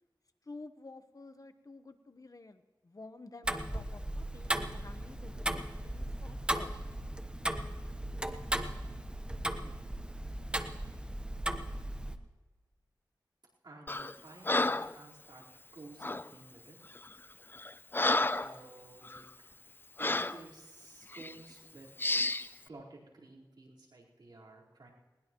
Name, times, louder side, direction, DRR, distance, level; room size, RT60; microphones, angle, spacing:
voice 1, 0.5-6.7, left 3 dB, 50° left, 9 dB, 1.1 m, -51 dB
Tick-tock, 3.4-12.2, right 1 dB, 15° right, 1.0 m, -36 dB
voice 2, 13.6-15.4 15.7-16.8 18.4-19.2 20.0-21.9 22.7-24.9, right 2 dB, 80° right, -5 dB, 4.3 m, -53 dB
Breathing, 13.9-14.1 14.5-15.0 16.0-16.3 17.0-17.1 17.5-18.6 19.0-19.2 20.0-20.4 21.1-21.3 22.0-22.5, left 2 dB, 30° left, 0.5 m, -31 dB
20.5 x 19.5 x 3.1 m, 1.3 s
wide cardioid pair, 55°, 8 cm